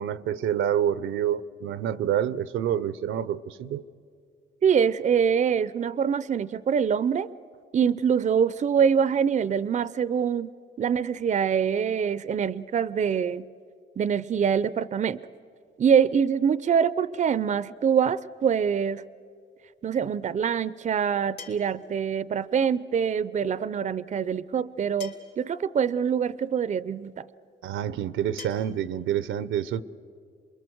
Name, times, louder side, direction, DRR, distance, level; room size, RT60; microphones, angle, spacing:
voice 1, 0.0-3.8 27.6-29.8, right 10 dB, 80° right, 0.8 m, -27 dB
voice 2, 4.6-7.3 7.7-10.5 10.8-13.5 14.0-15.2 15.8-19.0 19.8-27.3, right 7 dB, 35° right, 0.6 m, -24 dB
sound 1, 19.7-19.8 21.4-21.9 23.4-23.5 25.0-25.5 26.7-26.8 28.4-28.5, left 6 dB, 65° left, 3.5 m, -43 dB
27.5 x 22.0 x 7.9 m
cardioid pair, 90°, 20 cm